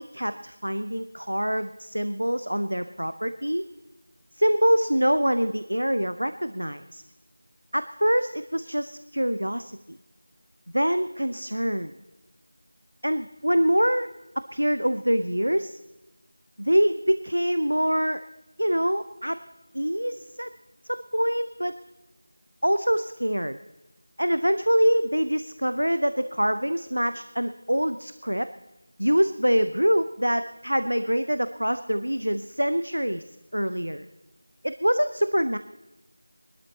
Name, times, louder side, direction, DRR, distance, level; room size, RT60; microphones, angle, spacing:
voice 1, 0.0-3.6 4.4-7.0 7.7-10.0 10.7-11.9 13.0-14.1 14.5-15.8 16.6-18.2 18.6-19.4 19.7-20.5 20.9-21.7 22.6-23.6 24.2-28.5 29.0-33.2 33.5-34.0 34.6-35.6, equal, 85° right, 11 dB, 0.6 m, -25 dB
21.0 x 12.0 x 4.1 m, 1.0 s
figure-of-eight pair, 170°, 0 cm